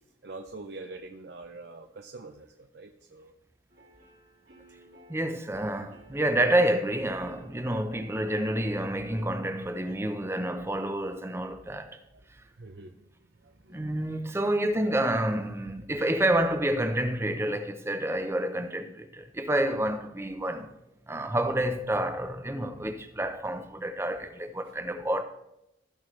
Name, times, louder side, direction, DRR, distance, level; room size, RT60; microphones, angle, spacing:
voice 1, 0.2-3.3 12.1-12.2 12.5-13.1 13.3-14.2 24.6-24.8, right 3 dB, 55° right, 0.6 m, -45 dB
sound 1, 3.7-10.0, equal, 75° right, 3.2 m, -54 dB
voice 2, 5.1-12.0 13.7-20.7 21.1-25.2, right 1 dB, 15° right, 0.6 m, -28 dB
15.5 x 6.2 x 3.2 m
head